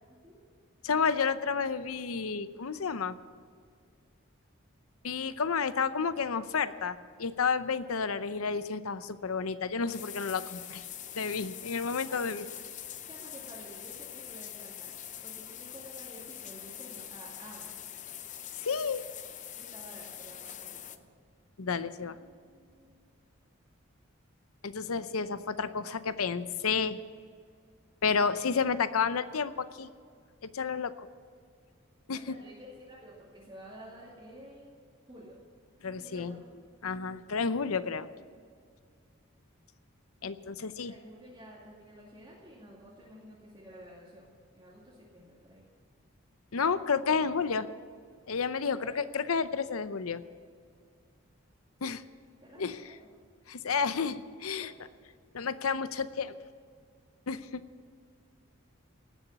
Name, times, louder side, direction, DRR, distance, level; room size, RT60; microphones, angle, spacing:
voice 1, 0.1-0.4 12.0-12.4 13.1-15.0 15.2-17.8 19.5-21.0 22.0-23.0 32.1-34.8 35.1-35.4 36.0-36.5 40.8-45.7 48.7-48.9 52.4-53.1 54.6-54.7, equal, 20° right, -7 dB, 2.4 m, -51 dB
voice 2, 0.8-3.2 5.0-10.8 11.1-12.4 18.6-19.0 21.6-22.2 24.6-27.0 28.0-29.9 30.4-31.1 32.1-32.3 35.8-36.4 36.8-38.1 40.2-40.9 46.5-47.7 48.3-50.2 51.8-52.0 52.6-52.8 53.5-54.7 55.3-56.3 57.3-57.4, left 5 dB, 85° left, 13 dB, 0.7 m, -31 dB
sound 1, 9.9-21.0, left 10 dB, 35° left, 0.6 m, -44 dB
18.0 x 7.1 x 8.2 m, 2.1 s
head